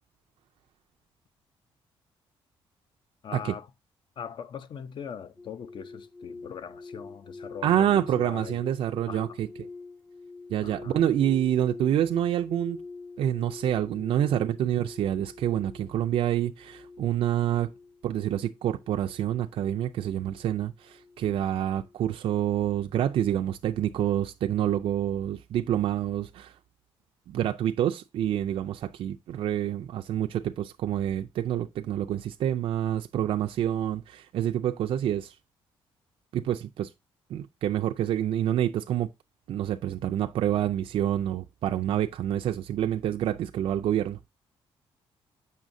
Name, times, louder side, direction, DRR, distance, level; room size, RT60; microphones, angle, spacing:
voice 1, 3.2-3.7 4.2-8.6 9.1-9.4 10.6-11.1, left 7 dB, 50° left, 0.6 m, -41 dB
sound 1, 5.4-22.7 22.9-23.3, left 3 dB, 15° left, 0.6 m, -46 dB
voice 2, 7.6-9.5 10.5-12.8 13.2-17.7 18.0-26.5 27.3-35.3 36.3-36.9 37.3-39.1 39.5-44.3, right 11 dB, 65° right, 0.4 m, -27 dB
7.4 x 5.6 x 2.6 m
cardioid pair, 125°, 10 cm